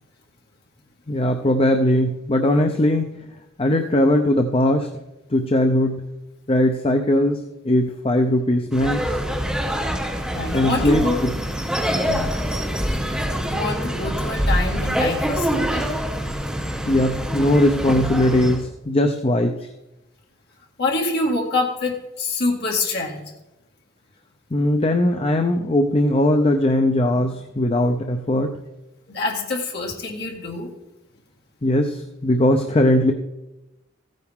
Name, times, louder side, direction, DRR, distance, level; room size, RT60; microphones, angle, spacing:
voice 1, 1.1-3.2 3.6-4.9 5.3-6.0 6.5-7.4 7.6-9.0 10.5-11.3 16.9-19.6 24.5-28.6 31.6-33.1, left 1 dB, 30° left, 5 dB, 0.6 m, -19 dB
sound 1, 8.7-18.6, equal, 5° right, 2.8 m, -25 dB
voice 2, 10.3-11.2 11.8-12.3 13.5-15.9 20.8-23.3 29.1-30.7, left 2 dB, 50° left, 0 dB, 2.0 m, -26 dB
15.0 x 9.2 x 3.6 m, 0.97 s
head